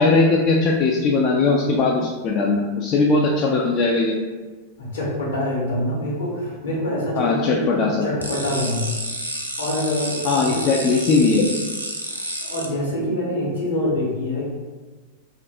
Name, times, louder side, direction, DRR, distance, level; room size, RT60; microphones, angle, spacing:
voice 1, 0.0-4.1 7.2-8.0 10.2-11.5, left 3 dB, 35° left, -2 dB, 0.3 m, -19 dB
voice 2, 4.8-8.9 9.6-10.6 12.1-14.5, left 1 dB, 70° left, -5 dB, 1.1 m, -25 dB
sound 1, 8.2-12.7, right 1 dB, 90° right, 0.4 m, -30 dB
2.6 x 2.5 x 3.2 m, 1.3 s
figure-of-eight pair, 90°, 0 cm